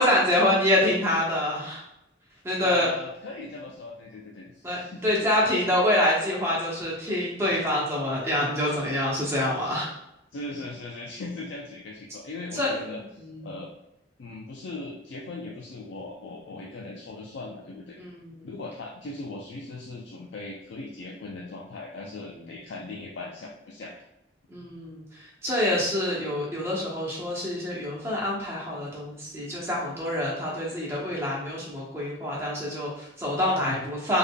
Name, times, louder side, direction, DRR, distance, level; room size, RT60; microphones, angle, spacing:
voice 1, 0.0-1.8 2.4-2.9 4.6-9.9 12.5-13.5 18.0-18.5 22.3-22.5 24.5-34.2, left 1 dB, 15° right, -5 dB, 1.0 m, -26 dB
voice 2, 2.6-5.5 10.3-13.0 13.4-13.7 14.2-18.0 18.4-24.0 33.6-33.9, left 2 dB, 80° left, -1 dB, 0.4 m, -39 dB
3.5 x 3.5 x 2.2 m, 0.85 s
head